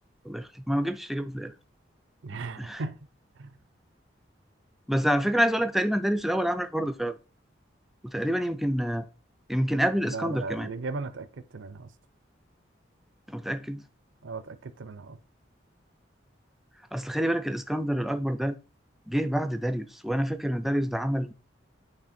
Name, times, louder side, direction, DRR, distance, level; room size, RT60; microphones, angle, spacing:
voice 1, 0.2-1.5 2.3-2.8 4.9-7.2 8.0-9.0 9.5-10.7 13.3-13.8 16.9-18.6 19.1-21.3, equal, ahead, 0.4 m, -27 dB
voice 2, 2.2-3.0 3.4-3.5 10.0-11.9 14.2-15.2, right 4 dB, 80° right, 0.5 m, -37 dB
8.8 x 3.3 x 4.2 m
head